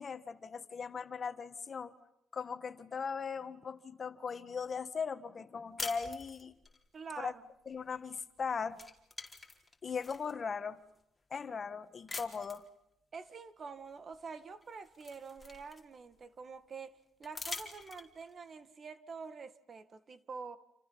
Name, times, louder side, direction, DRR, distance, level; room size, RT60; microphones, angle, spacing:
voice 1, 0.0-1.9 2.3-6.5 7.2-7.3 7.7-8.8 9.8-10.8 11.3-12.6, left 5 dB, 40° left, 1.7 m, -39 dB
sound 1, 5.8-6.8 8.2-8.4 8.7-10.3 10.9-11.0 12.1-12.7 14.1-14.2 14.6-16.1 17.2-18.3, left 3 dB, 15° left, 4.4 m, -44 dB
voice 2, 6.9-7.4 13.1-20.6, right 5 dB, 45° right, 1.8 m, -47 dB
29.5 x 28.5 x 5.7 m
cardioid pair, 90°, 0 cm